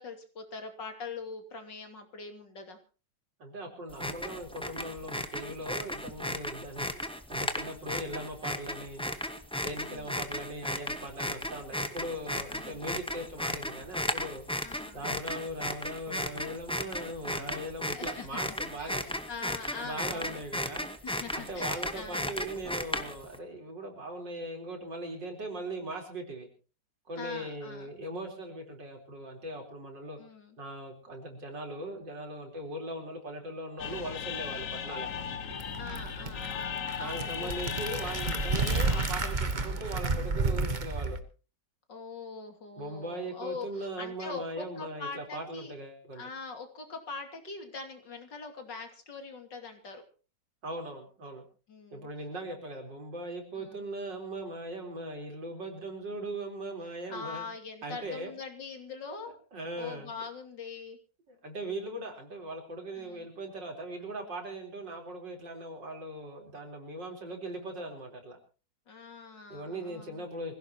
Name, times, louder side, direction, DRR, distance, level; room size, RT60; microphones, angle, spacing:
voice 1, 0.0-2.8 9.9-10.2 12.5-12.8 14.6-15.1 17.9-18.4 18.8-20.4 21.0-22.3 27.2-27.9 30.2-30.6 35.8-37.8 41.9-45.7 46.1-50.0 51.7-52.1 53.6-53.9 57.1-59.3 59.8-61.0 63.0-63.3 68.9-70.3, left 4 dB, 70° left, 5 dB, 3.3 m, -43 dB
voice 2, 3.4-6.9 7.3-9.0 9.6-14.5 14.9-19.0 19.8-20.9 21.3-26.5 27.1-30.2 30.6-35.2 37.0-41.2 42.8-46.3 50.6-51.4 51.9-57.4 57.8-58.3 59.5-60.1 61.3-68.4 69.5-70.5, right 1 dB, 75° right, 3 dB, 4.7 m, -39 dB
sound 1, 3.9-23.4, left 1 dB, 5° left, 1.1 m, -35 dB
sound 2, 33.8-40.8, left 7 dB, 50° left, 1.3 m, -38 dB
sound 3, 35.2-41.2, right 3 dB, 30° right, 1.1 m, -31 dB
25.0 x 16.5 x 3.0 m, 0.35 s
omnidirectional pair, 2.0 m